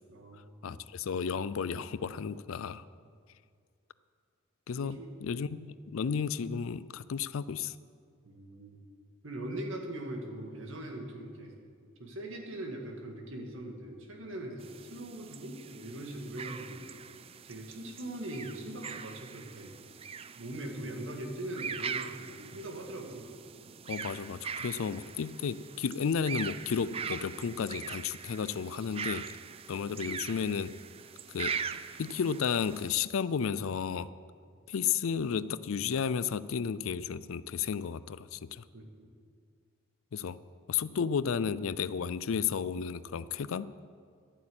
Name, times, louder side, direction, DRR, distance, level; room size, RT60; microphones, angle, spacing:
voice 1, 0.1-0.6 4.8-5.5 8.2-8.8 9.2-11.5 12.0-16.9 17.4-19.8 20.4-23.3 38.7-39.1, right 1 dB, 65° right, 2 dB, 2.1 m, -41 dB
voice 2, 0.6-2.8 4.7-5.0 5.2-7.7 23.9-29.2 29.7-30.7 31.3-31.6 32.0-34.1 34.7-38.6 40.1-40.4 40.7-43.7, left 6 dB, 70° left, 17 dB, 0.4 m, -33 dB
sound 1, 14.6-33.0, right 6 dB, 30° right, 0.3 m, -42 dB
12.0 x 8.6 x 8.6 m, 2.1 s
head